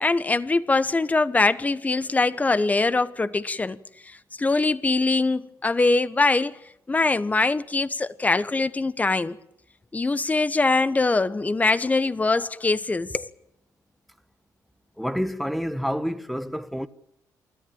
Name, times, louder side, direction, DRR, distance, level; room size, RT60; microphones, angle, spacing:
voice 1, 0.0-3.8 4.0-6.6 6.9-9.4 9.9-13.3, left 3 dB, 20° left, 1.2 m, -23 dB
voice 2, 15.0-16.9, equal, ahead, 1.3 m, -28 dB
28.0 x 14.0 x 8.8 m
cardioid pair, 85°, 7 cm